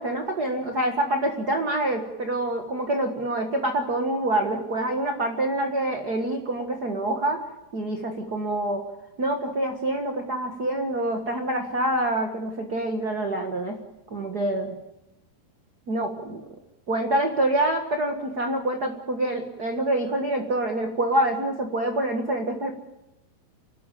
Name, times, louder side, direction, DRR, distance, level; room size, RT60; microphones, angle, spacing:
voice 1, 0.0-7.4 7.7-8.8 9.2-13.8 14.1-14.7 15.9-16.4 16.9-22.7, right 1 dB, 85° right, 4 dB, 0.8 m, -26 dB
29.5 x 12.5 x 8.4 m, 0.92 s
omnidirectional pair, 4.5 m